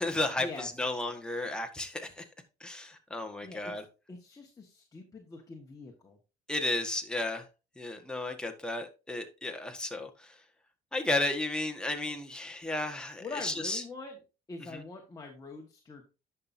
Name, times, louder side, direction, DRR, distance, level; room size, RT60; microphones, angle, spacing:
voice 1, 0.0-2.2 2.6-3.8 6.5-7.4 7.8-10.4 10.9-13.8 14.6-14.8, left 2 dB, 5° left, 1.3 m, -33 dB
voice 2, 4.1-6.2 13.2-14.1 14.5-16.1, left 3 dB, 20° left, 1.5 m, -43 dB
10.5 x 5.9 x 2.7 m
cardioid pair, 110°, 17 cm